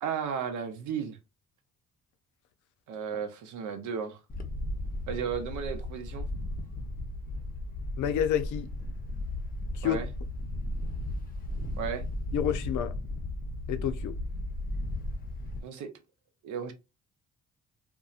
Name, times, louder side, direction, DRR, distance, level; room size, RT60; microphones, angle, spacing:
voice 1, 0.0-1.2 2.9-4.2 5.1-6.3 9.8-10.1 11.8-12.0 15.6-15.9 16.4-16.7, right 7 dB, 80° right, 0.7 m, -34 dB
Wind, 4.3-15.6, left 1 dB, 30° left, 0.6 m, -35 dB
voice 2, 8.0-8.7 9.7-10.0 12.3-12.9 13.7-14.2, left 10 dB, 80° left, 0.5 m, -29 dB
2.7 x 2.2 x 2.4 m
cardioid pair, 90°, 30 cm